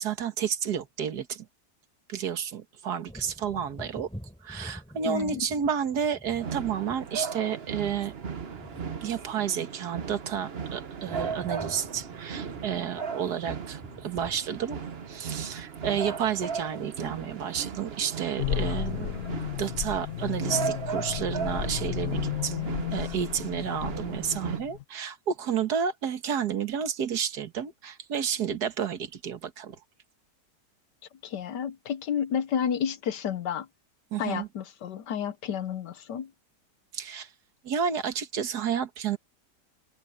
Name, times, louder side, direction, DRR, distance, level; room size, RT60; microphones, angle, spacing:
voice 1, 0.0-1.5 2.1-4.1 4.4-8.1 9.0-14.8 15.1-19.2 19.6-29.8 34.1-34.5 36.9-37.3 37.6-39.2, right 8 dB, 65° right, 2.0 m, -31 dB
Wind / Thunder, 3.0-10.6 10.9-18.1 18.5-18.7, equal, 5° left, 6.5 m, -49 dB
voice 2, 5.0-5.4 31.2-33.7 34.2-36.3, left 8 dB, 75° left, 1.5 m, -31 dB
sound 1, 6.4-24.6, right 6 dB, 40° right, 1.1 m, -37 dB
sound 2, 18.4-24.8, left 12 dB, 60° left, 1.0 m, -33 dB
open air
omnidirectional pair, 1.8 m